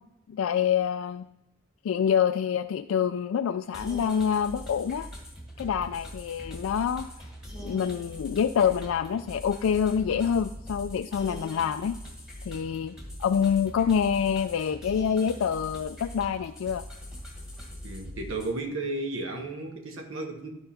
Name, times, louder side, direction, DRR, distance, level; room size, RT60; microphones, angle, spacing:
voice 1, 0.3-1.3 1.8-5.1 5.6-7.1 7.6-12.0 12.5-16.8, left 7 dB, 80° left, 8 dB, 0.3 m, -26 dB
sound 1, 3.7-18.5, equal, 5° right, 1.6 m, -42 dB
voice 2, 17.8-20.5, right 2 dB, 75° right, 3 dB, 1.4 m, -33 dB
11.0 x 3.8 x 5.6 m, 0.94 s
head